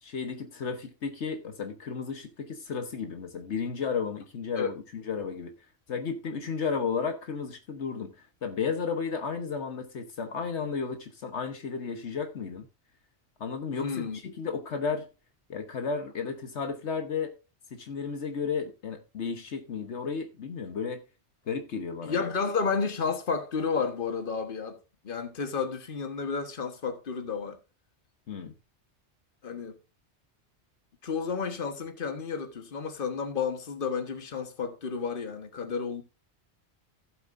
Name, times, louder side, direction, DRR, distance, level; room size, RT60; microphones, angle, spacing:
voice 1, 0.0-5.5 5.9-12.7 13.4-15.1 15.5-17.3 17.7-21.0 21.5-22.2 28.3-28.5, left 5 dB, 75° left, 1.4 m, -33 dB
voice 2, 13.7-14.2 22.0-24.8 25.0-27.6 29.4-29.8 31.0-36.0, left 5 dB, 50° left, 1.5 m, -31 dB
15.0 x 7.9 x 2.6 m
omnidirectional pair, 1.2 m